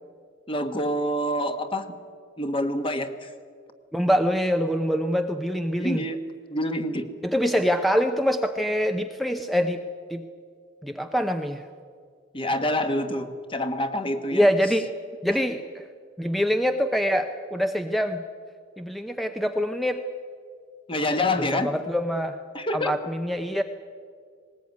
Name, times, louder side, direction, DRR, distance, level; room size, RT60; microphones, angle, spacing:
voice 1, 0.5-1.9 2.4-3.3 5.8-6.2 6.5-7.1 12.3-14.5 15.3-15.4 20.9-21.7 22.5-22.9, left 1 dB, 30° left, 8 dB, 1.5 m, -27 dB
voice 2, 3.9-6.1 7.2-9.8 10.1-10.2 10.8-11.7 14.3-14.9 15.2-15.8 16.2-18.2 18.8-20.0 21.5-22.4 22.7-23.6, equal, ahead, 6 dB, 0.7 m, -24 dB
19.5 x 19.0 x 9.5 m, 2.1 s
head